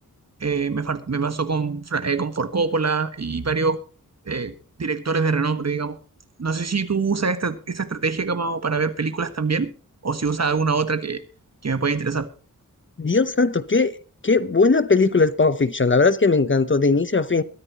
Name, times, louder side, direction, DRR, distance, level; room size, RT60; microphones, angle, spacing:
voice 1, 0.4-3.8 4.3-4.5 4.8-6.0 6.4-9.7 10.0-11.2 11.6-12.3, right 4 dB, 50° right, 1.5 m, -24 dB
voice 2, 13.0-14.0 14.2-17.4, left 4 dB, 35° left, 0.8 m, -19 dB
22.0 x 9.8 x 2.9 m
wide cardioid pair, 70°, 33 cm